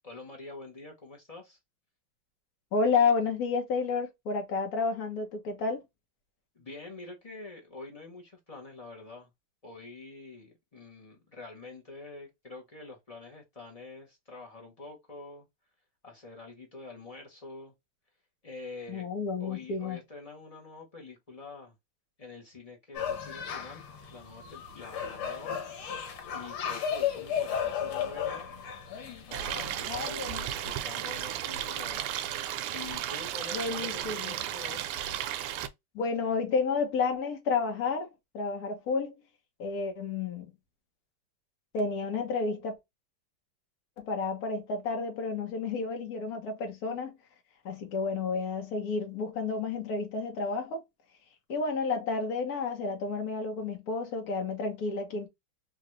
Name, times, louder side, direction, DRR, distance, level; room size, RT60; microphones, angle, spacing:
voice 1, 0.0-1.6 6.5-9.3 9.6-15.5 16.0-17.7 18.4-19.1 19.4-21.7 22.2-23.8 24.1-25.6 26.3-28.5 29.3-32.2 32.7-34.8, left 3 dB, 35° left, 0.5 m, -46 dB
voice 2, 2.7-5.8 18.9-20.0 29.9-30.4 33.5-34.3 35.9-38.1 38.3-39.1 39.6-40.5 41.7-42.8 44.0-47.2 47.6-50.8 51.5-55.3, left 4 dB, 55° left, 1.3 m, -31 dB
sound 1, 22.9-29.8, left 8 dB, 75° left, 1.8 m, -34 dB
Stream, 29.3-35.7, right 11 dB, 90° right, 1.5 m, -34 dB
3.9 x 2.4 x 3.0 m
omnidirectional pair, 2.4 m